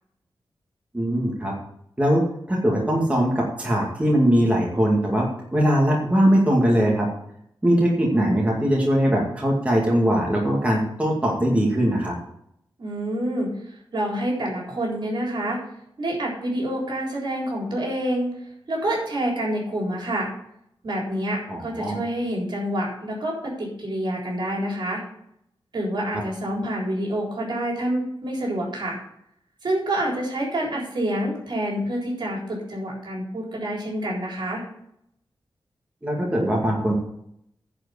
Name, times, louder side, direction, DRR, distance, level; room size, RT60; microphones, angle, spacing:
voice 1, 0.9-1.5 2.0-7.1 7.6-12.1 21.5-22.0 36.0-36.9, equal, 15° right, -3 dB, 2.3 m, -21 dB
voice 2, 12.8-13.5 13.9-15.6 16.0-18.3 18.7-20.3 20.8-25.0 25.7-29.0 29.6-34.6, right 1 dB, 60° right, -2 dB, 3.9 m, -27 dB
10.5 x 5.0 x 8.3 m, 0.71 s
wide cardioid pair, 160°, 9 cm